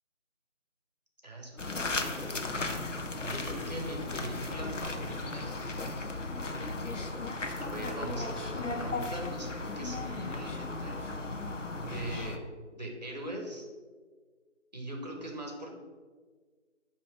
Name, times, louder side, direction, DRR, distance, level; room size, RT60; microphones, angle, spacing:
voice 1, 1.2-2.9 3.2-5.6 7.6-11.1 11.8-12.4 12.8-13.7 14.7-15.7, right 1 dB, 35° right, 1 dB, 0.9 m, -41 dB
sound 1, 1.6-12.4, left 3 dB, 80° left, 0.8 m, -36 dB
7.7 x 2.9 x 5.0 m, 1.5 s
figure-of-eight pair, 165°, 37 cm